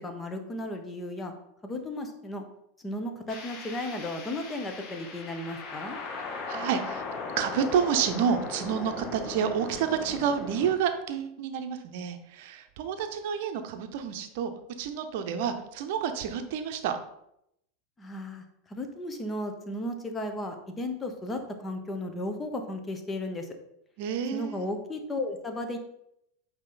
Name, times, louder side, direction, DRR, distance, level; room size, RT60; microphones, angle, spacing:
voice 1, 0.0-1.3 1.6-2.4 2.8-6.0 18.0-23.5 24.3-25.8, left 1 dB, 15° left, 6 dB, 1.0 m, -35 dB
sound 1, 3.3-10.8, left 4 dB, 35° left, 1.2 m, -38 dB
voice 2, 6.5-7.0 7.4-14.5 14.8-17.0 24.0-24.6, right 7 dB, 55° right, 7 dB, 0.8 m, -29 dB
8.7 x 2.9 x 3.9 m, 0.78 s
figure-of-eight pair, 85°, 0 cm